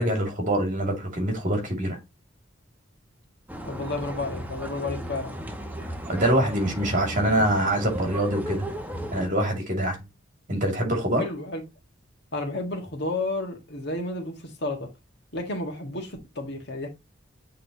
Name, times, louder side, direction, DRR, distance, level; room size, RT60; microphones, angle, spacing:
voice 1, 0.0-2.0 6.1-8.7 9.1-10.0 10.5-11.3, right 1 dB, 40° right, 2.5 m, -24 dB
sound 1, 3.5-9.3, equal, 10° right, 0.9 m, -35 dB
voice 2, 3.7-5.3 11.2-11.6 12.3-14.9 15.3-16.9, left 2 dB, 60° left, 1.8 m, -31 dB
8.4 x 3.8 x 3.0 m
head